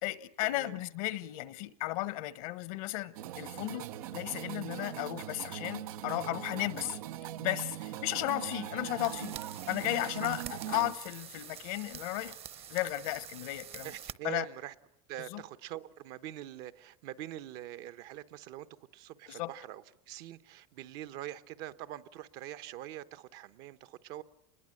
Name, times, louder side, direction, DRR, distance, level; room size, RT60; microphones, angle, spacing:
voice 1, 0.0-7.0 7.4-9.3 9.7-12.4 12.7-13.9 14.2-14.5 15.3-15.4 19.3-19.5, left 17 dB, 75° left, 1.2 m, -35 dB
sound 1, 3.2-10.9, right 12 dB, 90° right, 0.9 m, -41 dB
sound 2, 9.0-14.1, right 9 dB, 35° right, 0.9 m, -47 dB
voice 2, 13.8-14.7 15.1-18.7 18.9-24.2, right 13 dB, 60° right, 1.1 m, -44 dB
26.0 x 21.0 x 7.8 m
supercardioid pair, 125°, 18 cm